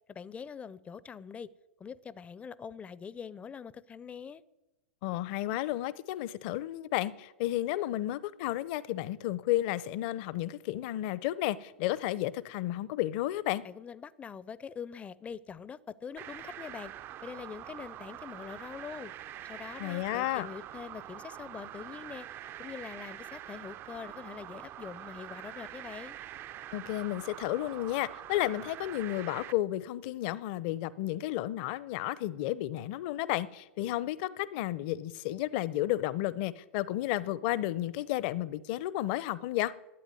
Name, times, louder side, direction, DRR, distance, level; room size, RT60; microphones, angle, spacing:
voice 1, 0.1-1.5 1.8-4.4 13.6-16.9 17.2-19.1 19.4-22.3 22.6-26.2, left 6 dB, 20° left, 0.6 m, -44 dB
voice 2, 5.0-13.6 19.8-20.5 26.7-39.7, left 15 dB, 50° left, 0.8 m, -32 dB
sound 1, 16.2-29.5, right 12 dB, 30° right, 0.5 m, -45 dB
11.5 x 9.0 x 9.7 m
hypercardioid pair, 110°, 7 cm